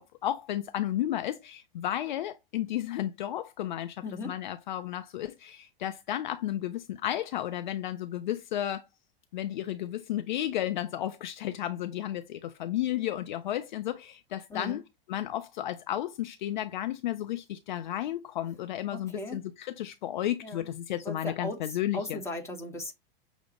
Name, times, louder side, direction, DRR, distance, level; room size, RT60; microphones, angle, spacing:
voice 1, 0.0-8.9 9.3-14.8 15.1-22.2, left 12 dB, 55° left, 0.4 m, -33 dB
voice 2, 4.0-4.3 14.5-14.8 18.9-19.4 20.4-20.7 21.0-21.6 21.9-22.9, left 2 dB, 10° left, 0.9 m, -37 dB
6.0 x 2.0 x 2.9 m
figure-of-eight pair, 95°, 29 cm